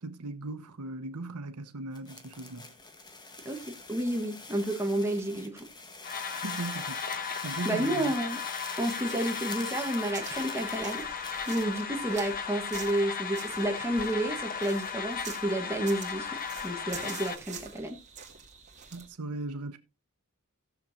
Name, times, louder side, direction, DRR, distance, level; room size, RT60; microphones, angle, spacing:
voice 1, 0.0-2.7 6.4-7.0 7.4-8.1 18.9-19.8, right 2 dB, 90° right, 0.9 m, -38 dB
sound 1, 1.9-11.8, left 3 dB, 20° left, 1.2 m, -44 dB
voice 2, 3.4-5.7 7.6-8.4 8.8-11.1 11.5-18.0, right 1 dB, 10° right, 1.3 m, -31 dB
sound 2, 6.0-17.4, left 6 dB, 40° left, 1.0 m, -36 dB
sound 3, 10.1-19.1, right 7 dB, 35° right, 2.5 m, -47 dB
17.5 x 6.9 x 2.7 m
head